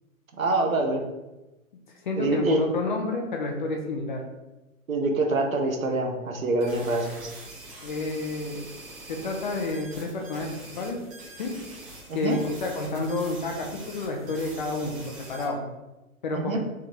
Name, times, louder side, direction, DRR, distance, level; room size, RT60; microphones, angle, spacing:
voice 1, 0.4-1.0 2.2-2.6 4.9-7.3 12.1-12.4 16.3-16.6, right 2 dB, 70° right, 3 dB, 0.9 m, -25 dB
voice 2, 2.0-4.2 7.8-8.7 9.1-11.0 11.3-11.5 12.1-15.6 16.2-16.6, left 2 dB, 35° left, 1 dB, 0.6 m, -30 dB
sound 1, 6.6-15.5, right 2 dB, 25° right, 1.1 m, -44 dB
3.6 x 3.5 x 2.9 m, 1.0 s
figure-of-eight pair, 125°, 42 cm